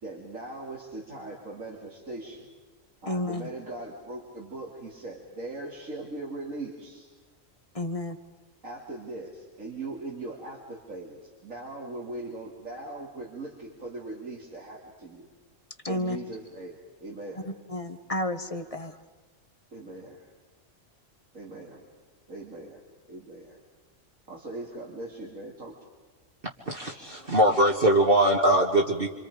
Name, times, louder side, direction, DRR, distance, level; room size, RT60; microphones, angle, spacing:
voice 1, 0.0-2.5 3.0-7.1 8.6-15.3 15.9-17.5 19.7-20.3 21.3-21.8 22.3-22.8 23.1-23.6 24.3-25.7, right 2 dB, 80° right, -3 dB, 3.5 m, -40 dB
voice 2, 3.1-3.5 7.7-8.2 15.8-16.2 17.4-19.0, left 1 dB, 25° left, 8 dB, 1.4 m, -31 dB
voice 3, 26.7-29.1, right 1 dB, 45° right, -1 dB, 2.0 m, -22 dB
27.5 x 27.0 x 5.2 m, 1.3 s
omnidirectional pair, 1.3 m